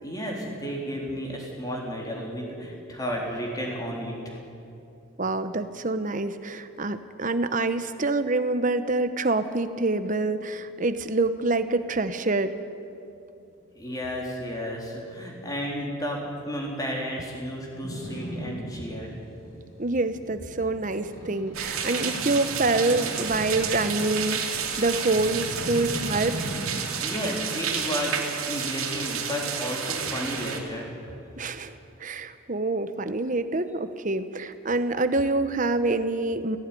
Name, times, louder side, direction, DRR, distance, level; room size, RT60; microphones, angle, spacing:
voice 1, 0.0-4.3 13.7-19.2 27.0-31.0, equal, 15° left, -2 dB, 3.8 m, -32 dB
voice 2, 5.2-12.5 19.8-26.3 31.4-31.7 32.0-36.6, right 2 dB, 40° right, 10 dB, 0.9 m, -26 dB
Boat Water vehicle, 17.8-26.9, equal, 50° left, 7.3 m, -38 dB
sound 1, 21.5-30.6, right 7 dB, 85° right, 3.0 m, -31 dB
17.5 x 17.0 x 9.9 m, 2.6 s
head